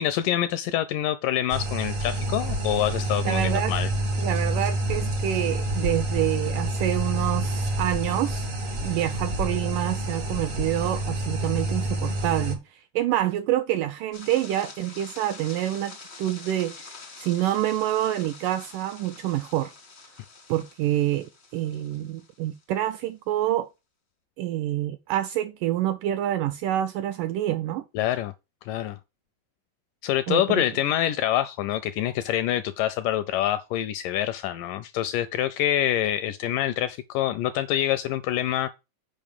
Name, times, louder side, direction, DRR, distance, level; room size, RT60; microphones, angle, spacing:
voice 1, 0.0-3.9 27.9-28.3 28.6-29.0 30.0-38.7, left 12 dB, 80° left, 1.9 m, -26 dB
sound 1, 1.5-12.6, right 1 dB, 60° right, 0.8 m, -28 dB
voice 2, 3.3-3.8 4.2-8.5 8.8-16.9 17.2-19.7 20.5-23.7 24.4-27.9 30.3-30.7, right 13 dB, 80° right, 1.9 m, -27 dB
sound 2, 14.1-22.6, left 4 dB, 60° left, 0.6 m, -46 dB
8.1 x 5.4 x 5.2 m
omnidirectional pair, 4.3 m